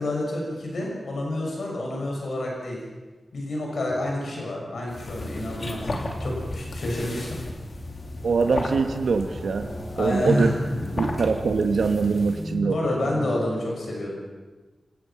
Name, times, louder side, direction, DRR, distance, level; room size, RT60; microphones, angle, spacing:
voice 1, 0.0-2.8 3.3-5.9 6.2-7.4 10.0-10.6 12.6-14.1, left 1 dB, 75° left, -1 dB, 6.5 m, -28 dB
sound 1, 3.9-5.7 6.2-6.7 7.5-13.4, equal, 5° left, 6.5 m, -39 dB
sound 2, 4.9-12.6, left 1 dB, 45° left, 2.9 m, -34 dB
voice 2, 8.2-9.7 10.0-10.5 11.0-12.8, right 4 dB, 85° right, 6 dB, 1.3 m, -23 dB
28.0 x 17.5 x 5.9 m, 1.3 s
wide cardioid pair, 150°, 0 cm